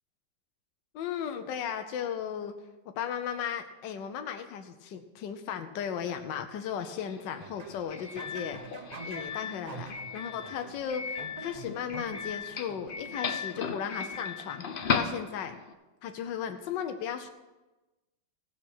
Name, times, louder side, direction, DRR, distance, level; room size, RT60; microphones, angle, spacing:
voice 1, 0.9-2.5 2.9-15.6 16.0-17.3, left 8 dB, 75° left, 7 dB, 1.4 m, -36 dB
Doorbell, 6.7-15.7, left 6 dB, 60° left, 0.5 m, -36 dB
sound 1, 7.4-13.3, right 4 dB, 45° right, 0.5 m, -47 dB
16.0 x 6.0 x 6.0 m, 1.1 s
omnidirectional pair, 2.0 m